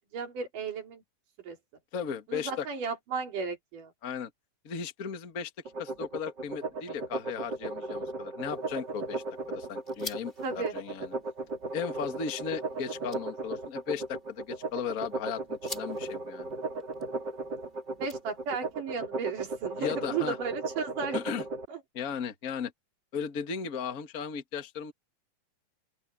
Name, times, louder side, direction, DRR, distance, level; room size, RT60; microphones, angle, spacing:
voice 1, 0.1-1.0 1.4-1.6 2.3-3.9 10.4-10.7 18.0-21.2 21.7-21.8, right 5 dB, 75° right, 5.0 m, -34 dB
voice 2, 1.9-2.7 4.0-4.3 4.6-5.5 5.8-11.1 11.7-16.5 19.8-20.4 21.1-21.4 21.9-22.7 23.1-24.9, left 7 dB, 35° left, 1.7 m, -36 dB
sound 1, 5.6-21.6, right 2 dB, 35° right, 3.4 m, -36 dB
sound 2, 8.4-18.7, left 1 dB, 15° left, 5.2 m, -50 dB
open air
omnidirectional pair, 3.7 m